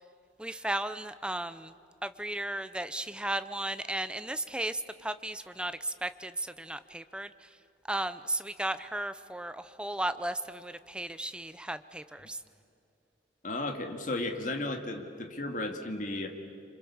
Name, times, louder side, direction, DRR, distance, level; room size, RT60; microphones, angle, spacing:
voice 1, 0.4-1.7 2.0-7.3 7.9-12.4, right 1 dB, 5° right, 12 dB, 0.6 m, -35 dB
voice 2, 13.4-16.3, left 2 dB, 45° left, 4 dB, 2.1 m, -34 dB
27.5 x 26.0 x 7.2 m, 2.7 s
head